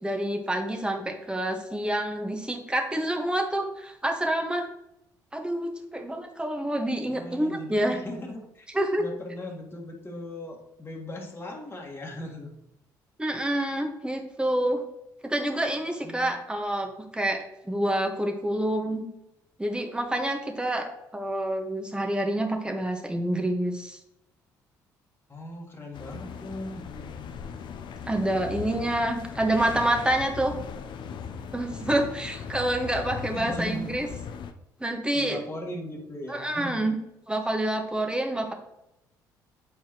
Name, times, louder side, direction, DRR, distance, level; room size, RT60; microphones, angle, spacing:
voice 1, 0.0-4.7 5.3-8.0 8.7-9.0 13.2-14.8 15.2-19.1 19.6-24.0 28.1-30.6 31.5-34.1 34.8-35.4 36.3-36.9 37.3-38.5, right 1 dB, 10° right, 3 dB, 1.3 m, -27 dB
voice 2, 7.1-8.7 9.0-12.5 16.0-16.4 25.3-27.3 33.3-33.9 35.1-36.8, left 1 dB, 25° left, -1 dB, 1.7 m, -38 dB
sound 1, 25.9-34.5, left 6 dB, 55° left, 0.6 m, -38 dB
8.0 x 4.7 x 3.0 m, 0.84 s
hypercardioid pair, 60°, 9 cm